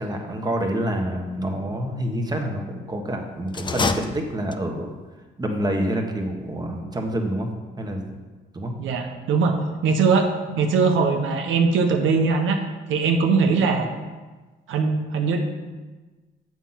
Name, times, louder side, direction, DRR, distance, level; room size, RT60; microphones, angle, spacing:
voice 1, 0.0-4.9 5.4-7.5 7.8-8.2 8.5-8.7, right 1 dB, 20° right, 2 dB, 1.3 m, -27 dB
sound 1, 3.5-4.9, left 4 dB, 25° left, 0.5 m, -27 dB
voice 2, 8.8-12.6 12.9-13.9 14.7-15.4, right 4 dB, 80° right, 4 dB, 1.1 m, -21 dB
7.3 x 5.9 x 5.8 m, 1.3 s
cardioid pair, 90°, 20 cm